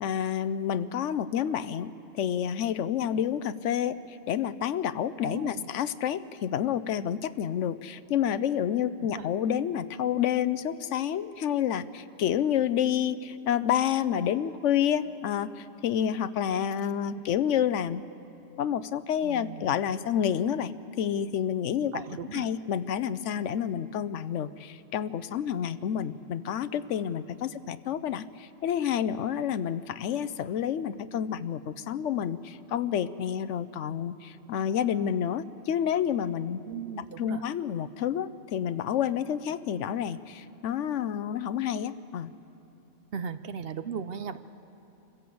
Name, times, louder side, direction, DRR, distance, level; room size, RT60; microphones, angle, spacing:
voice 1, 0.0-18.0 18.6-22.0 22.3-36.6 37.2-42.3, left 9 dB, 75° left, 14 dB, 1.0 m, -29 dB
voice 2, 5.2-5.7 9.0-9.3 19.2-19.7 21.9-22.5 36.7-37.4 43.1-44.4, right 7 dB, 55° right, 11 dB, 0.8 m, -37 dB
26.0 x 15.5 x 7.8 m, 2.9 s
omnidirectional pair, 1.3 m